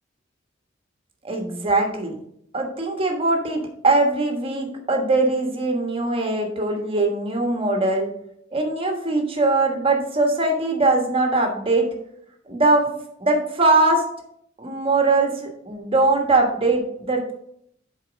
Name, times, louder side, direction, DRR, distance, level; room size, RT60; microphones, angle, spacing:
voice 1, 1.2-2.1 2.5-8.1 8.5-11.9 12.5-12.9 13.2-14.0 14.6-17.3, right 2 dB, 30° right, 2 dB, 1.3 m, -21 dB
7.4 x 4.3 x 5.1 m, 0.72 s
head